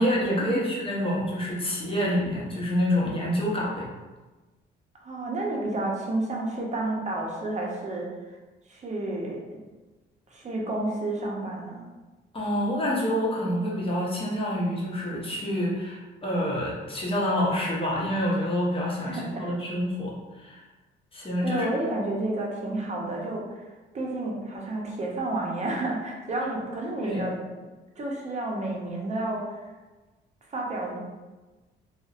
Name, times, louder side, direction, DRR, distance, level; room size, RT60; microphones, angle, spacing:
voice 1, 0.0-3.9 12.3-20.6 21.1-21.7 27.0-27.2, equal, 30° left, -5 dB, 0.8 m, -27 dB
voice 2, 5.0-8.1 8.7-9.6 10.3-11.8 19.1-19.5 21.4-23.7 23.9-27.4 28.0-29.6 30.5-31.0, right 2 dB, 35° right, -2 dB, 0.6 m, -30 dB
2.6 x 2.0 x 2.4 m, 1.2 s
cardioid pair, 90°, 20 cm